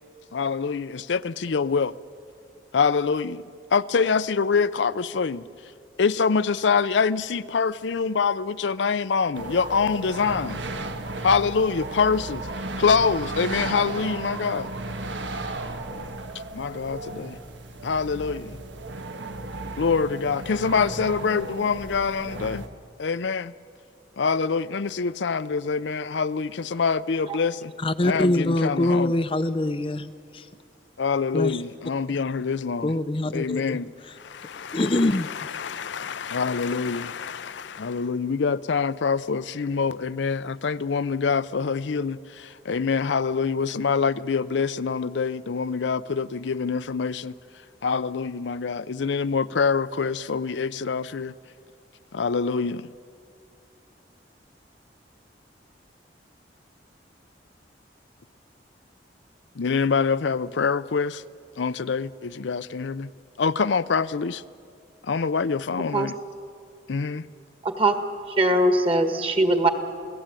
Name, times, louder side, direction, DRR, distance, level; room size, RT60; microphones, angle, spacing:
voice 1, 0.3-1.9 2.7-3.4 3.7-5.4 6.0-10.6 11.2-12.5 12.8-14.7 16.5-17.4 17.8-18.6 19.8-22.6 23.0-23.5 24.2-27.7 28.0-29.1 31.0-32.9 33.3-33.9 34.1-47.3 47.8-51.3 52.1-52.9 59.6-61.2 61.6-63.1 63.4-64.4 65.0-66.1 66.9-67.3, left 5 dB, 80° left, 0.5 m, -25 dB
sound 1, 9.3-22.7, right 2 dB, 85° right, 1.5 m, -35 dB
voice 2, 27.8-30.5 31.3-31.6 32.8-33.8 34.7-35.5, left 1 dB, 30° left, 0.5 m, -24 dB
voice 3, 67.6-68.0 68.3-69.7, right 1 dB, 30° right, 1.7 m, -21 dB
28.5 x 18.0 x 9.0 m
head